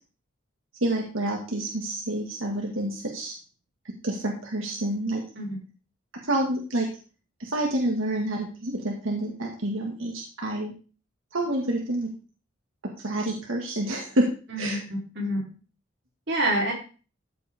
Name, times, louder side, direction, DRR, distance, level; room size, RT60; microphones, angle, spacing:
voice 1, 0.8-3.4 4.0-5.2 6.2-6.9 7.4-10.7 11.3-12.1 13.0-14.3 14.6-14.8, right 1 dB, 85° right, 0 dB, 1.9 m, -28 dB
voice 2, 14.5-15.5 16.3-16.7, right 1 dB, 55° right, -1 dB, 3.8 m, -27 dB
13.5 x 8.1 x 3.6 m, 0.37 s
head